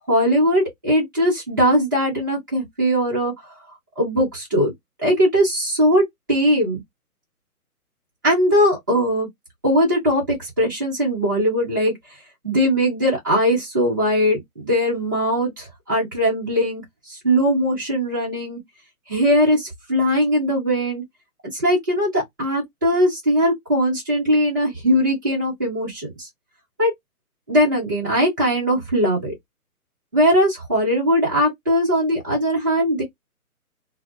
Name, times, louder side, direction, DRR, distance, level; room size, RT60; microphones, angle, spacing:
voice 1, 0.0-3.3 4.0-4.7 5.0-6.0 6.3-6.8 8.2-9.3 9.6-11.9 12.4-16.8 17.1-18.6 19.1-21.0 21.5-26.3 26.8-26.9 27.5-29.3 30.1-33.0, equal, 15° right, 0.7 m, -20 dB
2.1 x 2.1 x 3.0 m
hypercardioid pair, 170°, 45 cm